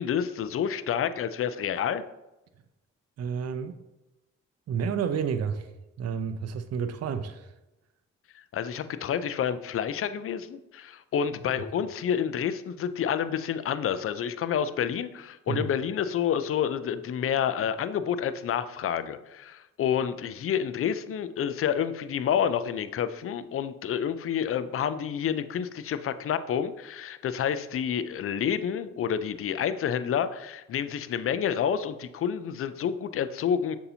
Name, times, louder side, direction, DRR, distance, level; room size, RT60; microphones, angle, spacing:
voice 1, 0.0-2.0 8.3-33.8, left 8 dB, 45° left, 13 dB, 0.4 m, -29 dB
voice 2, 3.2-3.8 4.7-5.7 6.0-7.5 15.5-15.7, right 6 dB, 50° right, 10 dB, 0.5 m, -30 dB
6.5 x 2.8 x 2.7 m, 0.96 s
supercardioid pair, 50°, 33 cm